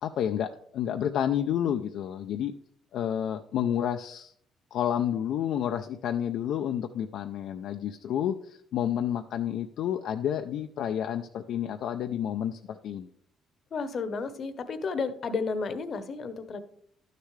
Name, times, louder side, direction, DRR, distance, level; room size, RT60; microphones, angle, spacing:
voice 1, 0.0-2.5 2.9-4.3 4.7-13.1, left 10 dB, 75° left, 5 dB, 0.4 m, -30 dB
voice 2, 13.7-16.6, left 4 dB, 50° left, 12 dB, 0.8 m, -32 dB
11.5 x 6.6 x 3.2 m, 0.65 s
cardioid pair, 100°, 0 cm